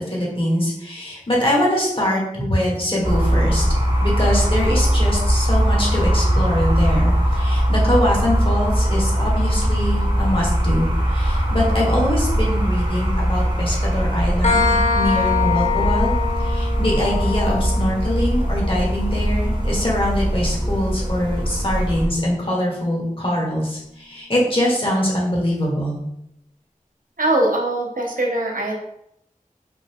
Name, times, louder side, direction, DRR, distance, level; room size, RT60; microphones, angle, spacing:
voice 1, 0.0-3.6 4.0-16.1 16.4-26.0, left 1 dB, 40° left, -4 dB, 1.5 m, -23 dB
sound 1, 3.0-22.1, equal, 35° right, 1.0 m, -20 dB
sound 2, 14.4-21.9, left 5 dB, 55° left, 0.7 m, -26 dB
voice 2, 27.2-28.7, right 1 dB, 75° right, -1 dB, 0.9 m, -21 dB
5.2 x 2.3 x 3.5 m, 0.77 s
wide cardioid pair, 45°, 14 cm